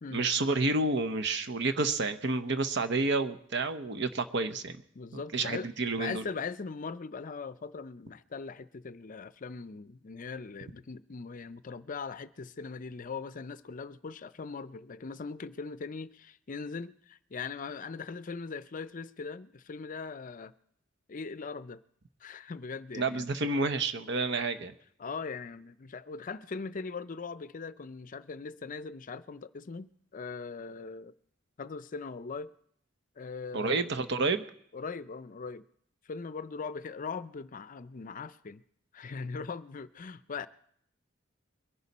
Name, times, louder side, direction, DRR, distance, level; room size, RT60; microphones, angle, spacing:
voice 1, 0.1-4.8 5.3-6.2 22.9-24.7 33.5-34.4, right 3 dB, 65° right, 0.9 m, -29 dB
voice 2, 5.0-5.7 6.0-20.5 21.1-21.8 22.2-23.3 25.0-31.1 31.6-32.5 33.2-33.9 34.7-35.7 36.1-38.6 38.9-40.5, left 4 dB, 45° left, 0.5 m, -40 dB
22.5 x 11.0 x 4.2 m
head